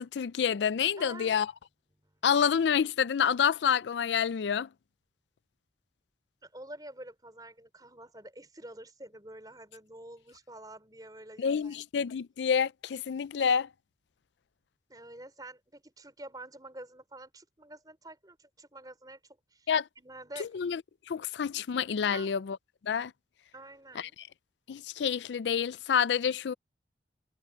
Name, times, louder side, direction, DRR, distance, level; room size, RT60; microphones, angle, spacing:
voice 1, 0.0-1.5 2.2-4.7 11.4-13.7 19.7-19.8 20.4-20.8 21.1-22.6 22.8-23.1 24.0-24.1 24.7-26.5, left 7 dB, 85° left, 0.4 m, -28 dB
voice 2, 1.0-1.4 2.0-2.2 6.4-11.8 14.9-19.2 19.5-19.7 20.0-20.5 22.0-22.4 23.5-24.1, right 1 dB, 20° right, 4.8 m, -48 dB
head